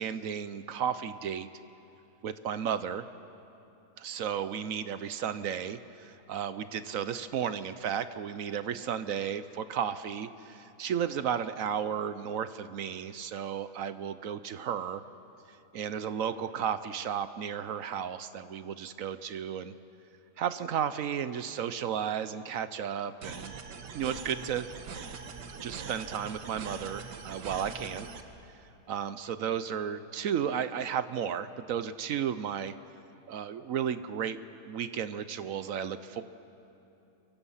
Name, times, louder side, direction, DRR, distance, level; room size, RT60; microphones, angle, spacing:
voice 1, 0.0-1.5 2.2-3.0 4.0-15.0 15.7-19.7 20.4-23.5 23.9-24.7 25.6-28.1 28.9-32.7 33.3-34.4 34.7-36.2, right 8 dB, 65° right, 12 dB, 0.9 m, -33 dB
sound 1, 23.2-28.2, right 5 dB, 80° right, 1.9 m, -42 dB
29.0 x 23.0 x 5.6 m, 2.8 s
omnidirectional pair, 1.8 m